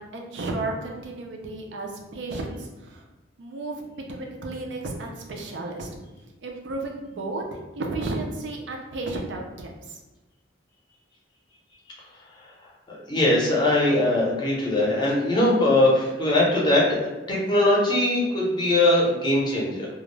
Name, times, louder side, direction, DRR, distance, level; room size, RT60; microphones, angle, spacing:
voice 1, 0.0-3.0 3.4-3.8 4.1-5.9 6.4-10.0, right 2 dB, 75° right, 1 dB, 0.4 m, -33 dB
voice 2, 12.9-17.0 17.3-19.9, left 1 dB, 25° left, -4 dB, 0.6 m, -21 dB
2.3 x 2.0 x 3.1 m, 1.1 s
head